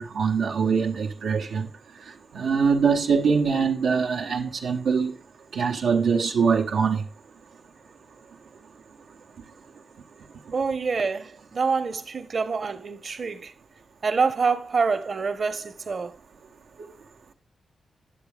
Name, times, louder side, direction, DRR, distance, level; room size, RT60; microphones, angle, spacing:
voice 1, 0.0-1.7 2.0-5.1 5.5-7.1, right 5 dB, 85° right, 0.7 m, -23 dB
voice 2, 10.5-13.5 14.0-16.1, right 5 dB, 60° right, 1.0 m, -26 dB
9.3 x 7.0 x 3.4 m
cardioid pair, 60°, 0 cm